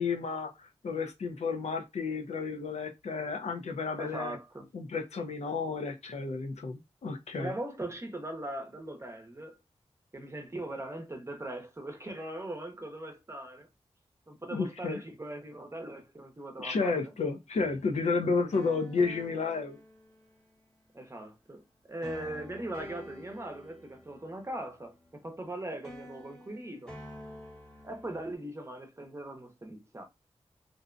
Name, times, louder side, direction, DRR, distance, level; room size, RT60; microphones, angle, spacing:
voice 1, 0.0-4.4 4.7-7.5 14.5-15.0 16.6-19.8, left 4 dB, 75° left, 0.5 m, -32 dB
voice 2, 4.0-4.7 7.4-9.6 10.1-13.7 14.3-17.1 20.9-26.9 27.8-30.0, right 1 dB, 25° right, 0.7 m, -40 dB
sound 1, 17.5-20.7 22.0-25.5 25.8-28.3, equal, 5° left, 0.9 m, -49 dB
2.6 x 2.1 x 2.4 m
wide cardioid pair, 70°, 12 cm